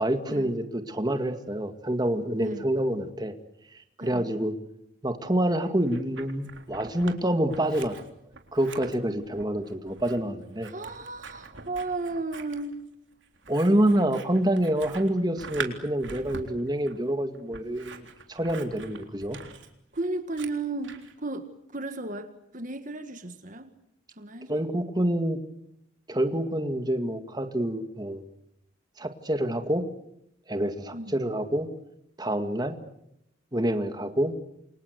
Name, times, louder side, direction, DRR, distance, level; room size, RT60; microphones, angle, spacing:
voice 1, 0.0-3.3 3.7-4.5 5.0-8.0 8.5-10.7 13.5-19.4 24.5-25.4 26.1-28.2 29.0-29.8 30.5-31.7 32.2-32.8 33.5-34.3, right 1 dB, 20° right, 8 dB, 2.0 m, -27 dB
voice 2, 4.0-4.3 10.7-12.8 19.9-23.7 24.2-24.7 30.9-31.1, right 2 dB, 40° right, 9 dB, 1.8 m, -34 dB
Scissors, 5.6-7.2 7.5-21.1, right 4 dB, 65° right, 3.7 m, -43 dB
29.0 x 25.5 x 8.1 m, 0.77 s
head